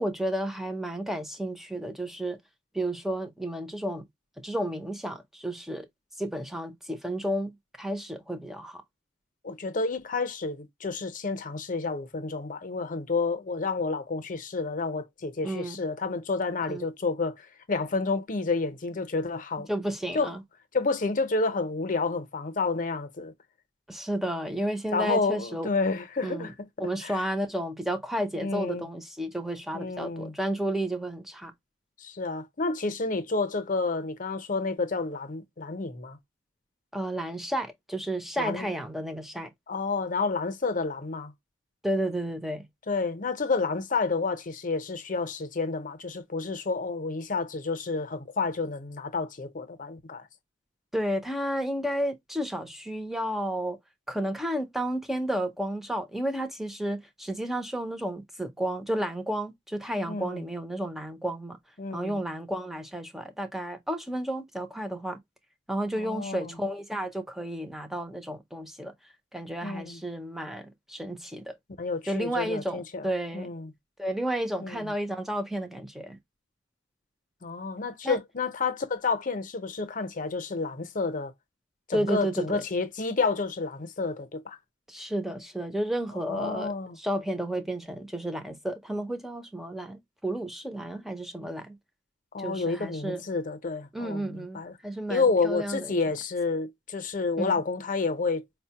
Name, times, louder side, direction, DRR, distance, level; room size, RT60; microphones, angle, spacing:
voice 1, 0.0-2.4 2.7-4.0 4.4-5.9 6.2-8.8 15.4-15.8 16.7-16.9 19.7-20.4 23.9-25.7 26.2-26.5 26.8-31.5 36.9-39.5 41.8-42.7 50.9-53.8 54.1-61.6 61.9-65.2 65.7-68.9 69.3-71.6 72.1-73.5 74.0-76.2 78.0-78.2 81.9-82.6 84.9-91.8 92.4-93.2 93.9-96.0 97.4-97.6, right 1 dB, ahead, 0.5 m, -32 dB
voice 2, 9.4-19.7 20.1-20.3 20.7-23.3 24.9-27.2 28.3-28.9 29.7-30.4 32.0-36.2 38.4-38.7 39.7-41.3 42.9-50.3 60.1-60.5 61.8-62.2 65.9-66.6 69.6-70.0 71.8-73.1 73.3-73.7 74.6-74.9 77.4-81.3 81.9-84.6 86.3-87.0 92.3-94.7 95.1-98.4, left 4 dB, 45° left, 0.6 m, -30 dB
4.9 x 2.1 x 2.8 m
head